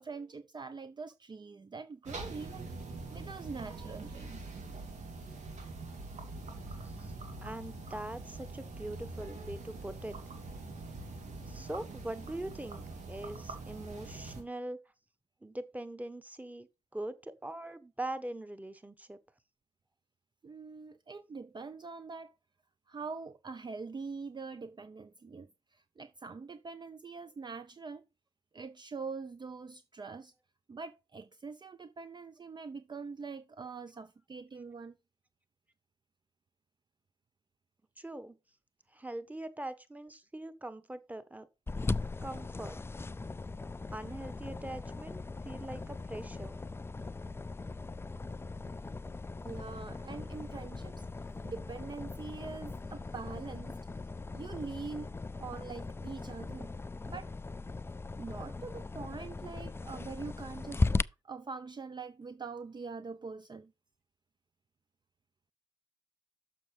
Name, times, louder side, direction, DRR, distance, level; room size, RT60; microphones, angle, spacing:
voice 1, 0.0-2.7 3.1-4.4 20.4-22.3 22.9-28.0 28.5-30.3 30.7-35.0 49.4-51.1 51.4-53.8 54.3-56.7 57.0-57.3 58.2-63.7, right 4 dB, 35° right, 0.6 m, -44 dB
sound 1, 2.1-14.4, right 3 dB, 70° right, 2.1 m, -44 dB
voice 2, 7.4-10.2 11.5-14.8 15.4-16.7 16.9-19.2 38.0-38.4 38.9-41.5 42.2-42.8 43.9-45.2 45.4-46.6, right 1 dB, 10° right, 1.3 m, -42 dB
sound 2, 41.7-61.0, left 3 dB, 20° left, 0.4 m, -38 dB
6.8 x 5.7 x 4.9 m
hypercardioid pair, 40°, 13 cm